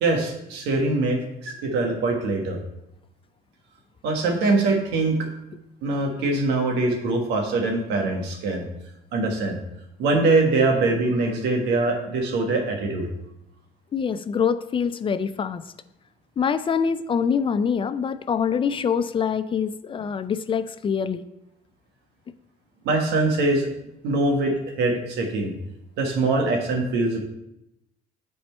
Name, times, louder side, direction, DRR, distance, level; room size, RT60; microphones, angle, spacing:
voice 1, 0.0-2.6 4.0-5.2 5.8-8.7 9.1-9.6 10.0-13.1 22.8-23.7 24.0-24.5 24.8-25.5 26.0-27.2, right 2 dB, 85° right, 2 dB, 1.5 m, -23 dB
voice 2, 13.9-15.6 16.4-21.2, left 7 dB, 30° left, 13 dB, 0.4 m, -25 dB
8.5 x 4.4 x 4.4 m, 0.86 s
cardioid pair, 110°, 17 cm